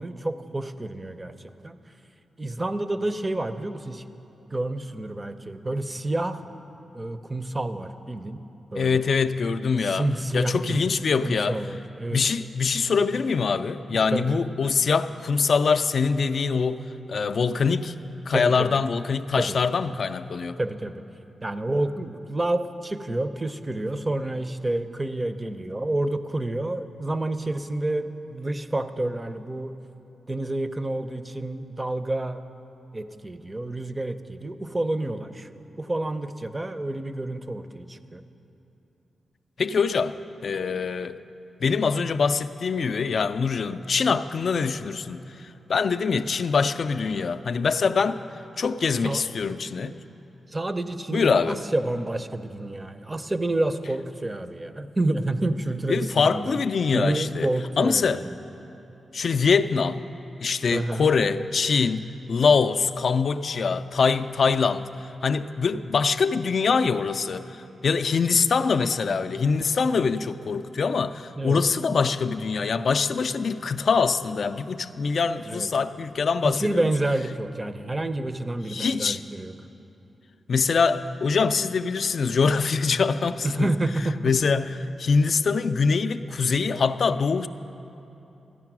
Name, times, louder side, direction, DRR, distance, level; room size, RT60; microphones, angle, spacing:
voice 1, 0.0-1.3 1.6-1.8 2.4-4.0 4.5-6.4 6.9-8.4 8.7-9.1 9.8-10.9 11.2-12.2 13.9-14.5 18.3-18.8 19.4-19.6 20.6-21.0 21.4-29.7 30.3-32.4 32.9-35.5 35.8-38.2 49.0-49.2 50.5-56.7 56.9-58.3 60.7-61.1 71.4-71.6 75.5-75.7 76.4-79.5 83.4-84.3, right 2 dB, 20° right, 10 dB, 0.5 m, -29 dB
voice 2, 8.8-10.1 10.3-11.6 12.1-17.9 18.3-20.6 39.6-40.2 40.4-41.2 41.6-45.2 45.7-48.2 48.6-49.9 51.1-51.6 55.9-57.5 57.8-58.2 59.1-60.0 60.4-64.9 65.2-67.5 67.8-76.8 78.7-79.2 80.5-83.7 84.2-87.5, left 5 dB, 55° left, 11 dB, 0.3 m, -24 dB
13.5 x 9.5 x 6.0 m, 3.0 s
wide cardioid pair, 115°, 0 cm